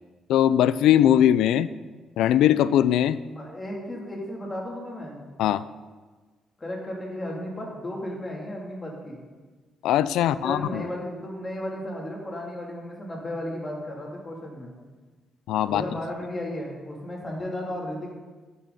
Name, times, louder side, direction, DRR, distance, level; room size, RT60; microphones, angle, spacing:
voice 1, 0.3-1.7 2.2-3.2 5.4-5.6 9.8-10.8 15.5-15.8, left 11 dB, 85° left, 16 dB, 0.3 m, -20 dB
voice 2, 3.3-5.2 6.6-9.2 10.2-14.7 15.6-18.1, left 1 dB, 25° left, -2 dB, 2.9 m, -34 dB
12.0 x 6.8 x 4.1 m, 1.3 s
cardioid pair, 90°, 0 cm